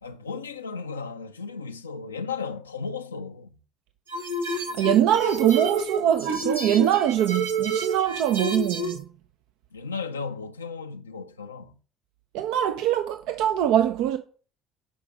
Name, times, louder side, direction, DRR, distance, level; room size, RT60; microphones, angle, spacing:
voice 1, 0.0-3.6 9.7-11.8, left 5 dB, 85° left, 0.4 m, -35 dB
sound 1, 4.1-9.0, right 3 dB, 85° right, 1.4 m, -29 dB
voice 2, 4.7-9.1 12.3-14.2, right 11 dB, 65° right, 0.5 m, -23 dB
8.4 x 5.0 x 5.0 m
figure-of-eight pair, 55°, 0 cm